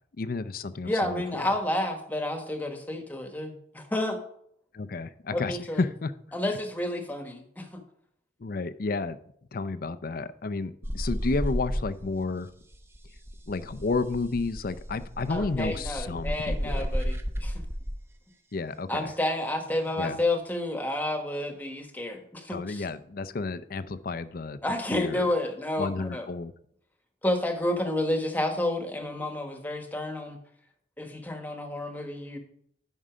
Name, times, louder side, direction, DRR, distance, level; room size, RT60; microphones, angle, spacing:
voice 1, 0.2-1.5 4.7-6.1 8.4-9.2 9.5-12.5 13.5-16.9 18.5-19.1 20.0-20.2 22.5-24.6 24.9-25.3 25.8-26.5, left 3 dB, 55° left, 13 dB, 0.5 m, -31 dB
voice 2, 0.8-4.2 5.3-5.8 6.3-7.8 15.3-17.6 18.9-22.8 24.6-26.2 27.2-30.4 31.0-32.4, left 1 dB, 10° left, 5 dB, 1.3 m, -30 dB
sound 1, 10.8-12.3 12.5-18.0 19.7-20.1, equal, 15° right, 0.7 m, -32 dB
11.0 x 5.4 x 5.0 m, 0.69 s
head